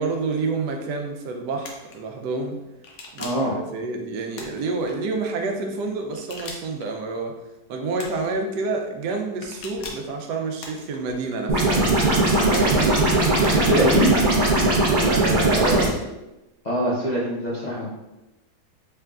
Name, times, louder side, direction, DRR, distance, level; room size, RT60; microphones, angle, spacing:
voice 1, 0.0-2.6 3.1-7.4 7.7-11.9 12.5-13.0 13.7-13.9 14.8-15.9, right 3 dB, 90° right, 3 dB, 1.2 m, -28 dB
sound 1, 1.6-2.0 2.8-3.5 4.3-5.0 6.1-6.9 8.0-8.3 9.4-10.1 10.6-11.2 12.0-12.7 13.4-13.8, left 3 dB, 80° left, 1.2 m, -40 dB
voice 2, 3.2-3.5 13.5-14.1 16.6-17.9, equal, 50° left, -8 dB, 0.4 m, -23 dB
sound 2, 11.5-15.9, right 2 dB, 65° right, 0.5 m, -19 dB
3.7 x 3.3 x 2.3 m, 1.0 s
omnidirectional pair, 1.7 m